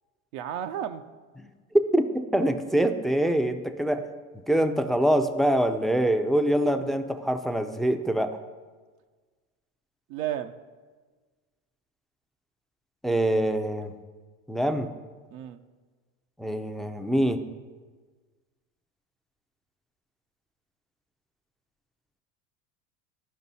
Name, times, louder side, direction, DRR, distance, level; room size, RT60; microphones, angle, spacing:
voice 1, 0.3-1.0 6.7-6.8 10.1-10.5 15.3-15.6, right 10 dB, 75° right, 7 dB, 0.7 m, -32 dB
voice 2, 2.3-4.1 4.5-8.4 13.0-13.9 14.5-14.9 16.4-17.4, right 1 dB, ahead, 7 dB, 0.5 m, -24 dB
12.5 x 5.3 x 4.1 m, 1.4 s
supercardioid pair, 95°, 39 cm